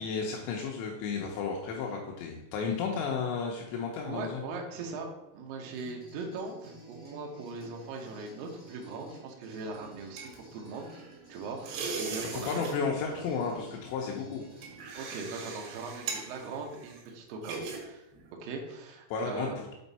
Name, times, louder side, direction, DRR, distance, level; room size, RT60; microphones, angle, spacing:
voice 1, 0.0-4.4 12.3-14.4 19.1-19.7, left 5 dB, 85° left, 0 dB, 2.9 m, -33 dB
voice 2, 4.0-5.1 5.3-10.9 11.3-12.6 14.9-18.1 18.4-19.6, right 4 dB, 70° right, 1 dB, 2.4 m, -40 dB
sound 1, 5.6-15.9, right 2 dB, 15° right, 1.3 m, -53 dB
sound 2, 9.7-11.2 11.6-12.8 13.0-13.3 14.0-17.8 18.1-18.3, right 5 dB, 85° right, 3.6 m, -40 dB
7.4 x 4.4 x 4.1 m, 0.88 s
omnidirectional pair, 4.9 m